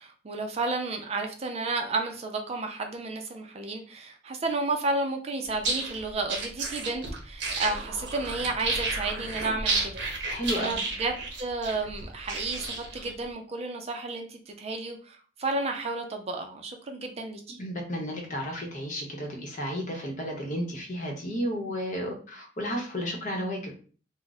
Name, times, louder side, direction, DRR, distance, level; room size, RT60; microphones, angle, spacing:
voice 1, 0.0-10.0 10.6-17.6, right 3 dB, 35° right, 4 dB, 0.4 m, -32 dB
sound 1, 5.5-13.1, right 3 dB, 70° right, 0.7 m, -32 dB
voice 2, 10.3-10.9 17.6-23.7, equal, 45° left, 0 dB, 0.8 m, -32 dB
2.4 x 2.1 x 3.9 m, 0.39 s
head